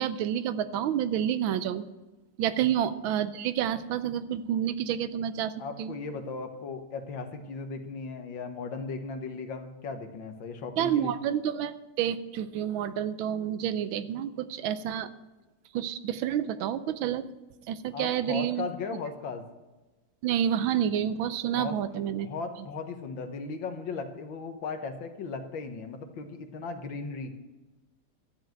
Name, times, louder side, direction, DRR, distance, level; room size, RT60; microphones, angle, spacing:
voice 1, 0.0-1.8 2.4-5.5 5.8-5.9 10.8-15.1 15.7-17.3 17.7-18.6 20.2-22.3, right 10 dB, 80° right, 13 dB, 1.4 m, -29 dB
voice 2, 5.6-11.1 17.9-19.4 21.6-21.8 22.2-27.3, left 4 dB, 70° left, 6 dB, 1.9 m, -37 dB
12.5 x 7.2 x 7.7 m, 1.1 s
omnidirectional pair, 2.2 m